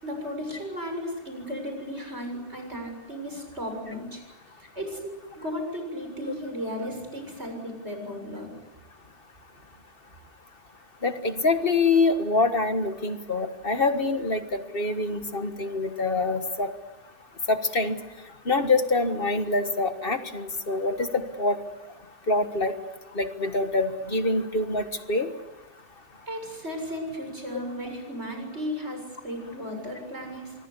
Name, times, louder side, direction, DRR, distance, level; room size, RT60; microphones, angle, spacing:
voice 1, 0.0-4.2 4.6-8.5 26.3-30.5, equal, 70° right, 4 dB, 7.3 m, -35 dB
voice 2, 11.0-16.7 17.5-18.0 18.5-21.6 22.3-22.7 23.2-25.3, left 3 dB, 55° left, 8 dB, 1.8 m, -25 dB
25.0 x 22.5 x 8.3 m, 1.2 s
omnidirectional pair, 1.2 m